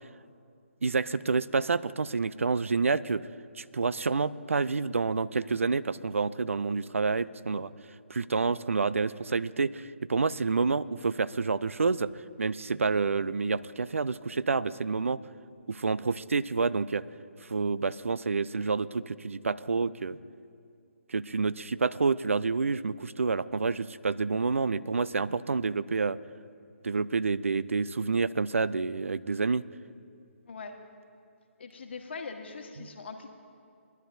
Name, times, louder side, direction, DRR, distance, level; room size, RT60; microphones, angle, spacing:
voice 1, 0.8-3.3 3.6-7.7 8.1-12.1 12.4-15.2 15.7-17.0 17.5-20.2 21.1-26.2 26.8-29.6 32.8-32.9, right 4 dB, 80° right, 17 dB, 0.4 m, -28 dB
voice 2, 31.6-33.3, left 4 dB, 55° left, 4 dB, 1.3 m, -41 dB
21.5 x 11.5 x 2.6 m, 2.4 s
figure-of-eight pair, 145°, 7 cm